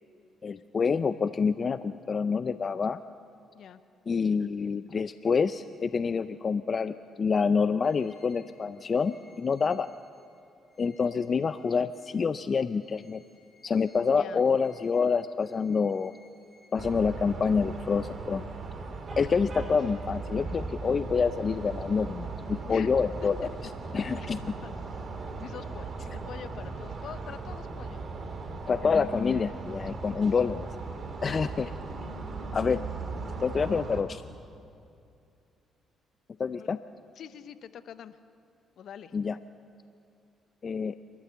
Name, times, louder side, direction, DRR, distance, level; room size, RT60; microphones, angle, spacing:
voice 1, 0.4-3.0 4.1-9.9 10.8-13.2 13.6-16.1 16.7-18.5 19.2-23.5 23.9-24.4 28.7-30.8 31.2-31.7 32.5-32.8 33.4-34.2 36.4-36.8 39.1-39.4 40.6-40.9, left 5 dB, 45° left, 13 dB, 0.5 m, -27 dB
sound 1, 7.8-12.2 12.6-17.5, left 2 dB, 20° left, 5.7 m, -63 dB
sound 2, 16.8-34.0, right 3 dB, 45° right, 2.7 m, -38 dB
voice 2, 22.6-22.9 23.2-23.5 23.8-23.9 24.2-25.0 25.4-28.0 30.1-30.2 33.7-33.8 36.5-36.7 37.2-38.2 38.8-39.2, left 9 dB, 65° left, 13 dB, 0.9 m, -45 dB
27.5 x 13.5 x 7.0 m, 2.5 s
supercardioid pair, 60°, 0 cm